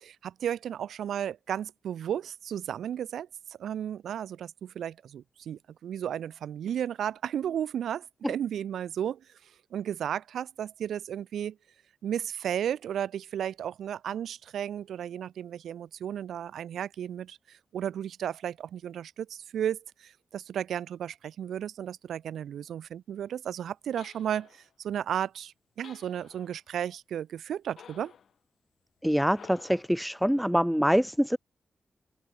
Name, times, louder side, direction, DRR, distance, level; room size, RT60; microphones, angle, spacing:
voice 1, 0.0-9.3 9.7-11.6 12.0-28.1, right 9 dB, 85° right, 0.5 m, -34 dB
sound 1, 24.0-24.7 25.8-26.6 27.8-28.3 29.3-30.0, left 7 dB, 75° left, 5.5 m, -52 dB
voice 2, 29.0-31.4, equal, ahead, 0.4 m, -25 dB
open air
cardioid pair, 55°, 0 cm